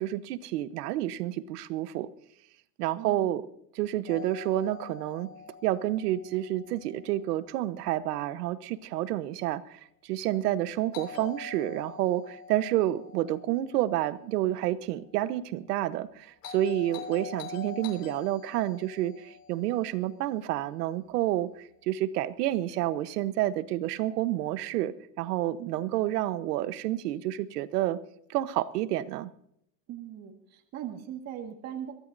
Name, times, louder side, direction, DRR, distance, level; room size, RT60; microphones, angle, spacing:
voice 1, 0.0-2.1 2.8-3.4 3.8-5.3 5.6-28.0 28.3-29.3, right 14 dB, 70° right, 14 dB, 1.1 m, -29 dB
voice 2, 3.0-3.4 25.6-26.0 29.9-31.9, right 10 dB, 30° right, 2 dB, 1.9 m, -40 dB
Doorbell, 4.1-8.1 10.9-15.1 16.4-20.8, left 6 dB, 80° left, 7.5 m, -46 dB
23.5 x 16.5 x 2.7 m, 0.71 s
supercardioid pair, 155°, 49 cm